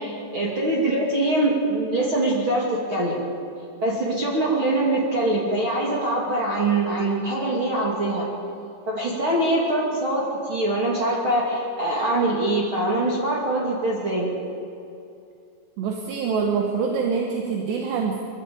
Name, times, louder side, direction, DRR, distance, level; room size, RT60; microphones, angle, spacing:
voice 1, 0.0-3.3 3.8-8.3 8.9-14.3, right 1 dB, 35° right, -4 dB, 2.6 m, -23 dB
voice 2, 15.8-18.2, right 5 dB, 75° right, 1 dB, 3.4 m, -25 dB
23.0 x 13.5 x 8.7 m, 2.6 s
omnidirectional pair, 5.3 m